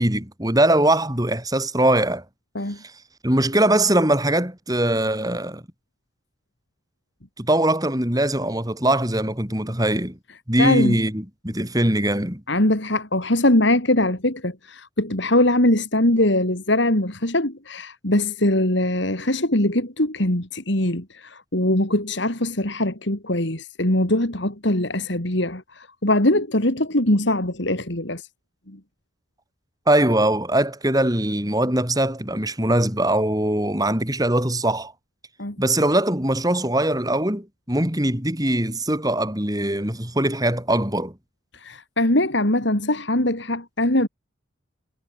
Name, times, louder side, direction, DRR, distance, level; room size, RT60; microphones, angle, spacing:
voice 1, 0.0-2.2 3.2-5.6 7.4-10.2 10.5-12.4 29.9-34.9 35.6-41.1, right 1 dB, 20° right, 5.0 m, -21 dB
voice 2, 10.6-11.0 12.5-28.3 28.7-28.8 35.4-35.6 41.5-44.1, left 1 dB, 60° left, 3.3 m, -22 dB
head